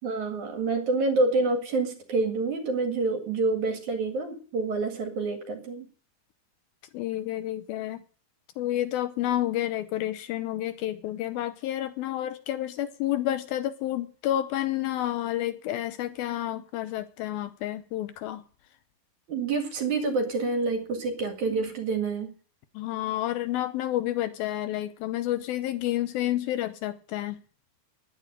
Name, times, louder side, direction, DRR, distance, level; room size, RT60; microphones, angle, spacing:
voice 1, 0.0-5.9 19.3-22.3, right 3 dB, 55° right, 3.0 m, -27 dB
voice 2, 6.9-8.0 8.6-18.4 22.8-27.4, left 13 dB, 75° left, 2.4 m, -30 dB
10.5 x 10.0 x 7.9 m
omnidirectional pair, 4.7 m